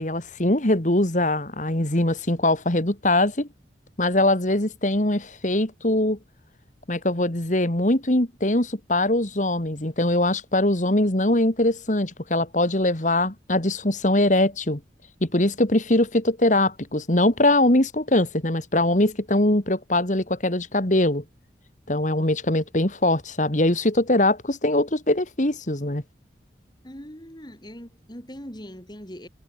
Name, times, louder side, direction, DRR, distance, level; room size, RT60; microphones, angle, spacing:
voice 1, 0.0-3.5 4.0-6.2 6.9-14.8 15.2-21.2 21.9-26.0, left 1 dB, 45° left, 2.5 m, -22 dB
voice 2, 26.8-29.3, equal, 25° left, 5.5 m, -41 dB
head